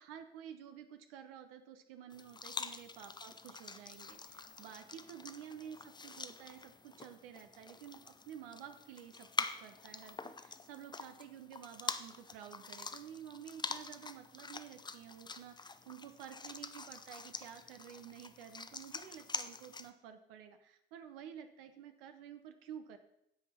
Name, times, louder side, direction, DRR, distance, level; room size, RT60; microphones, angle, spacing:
voice 1, 0.0-23.0, right 9 dB, 70° right, 8 dB, 0.9 m, -51 dB
sound 1, 2.1-19.9, left 4 dB, 15° left, 0.6 m, -45 dB
15.5 x 5.4 x 4.3 m, 0.79 s
figure-of-eight pair, 50°, 30 cm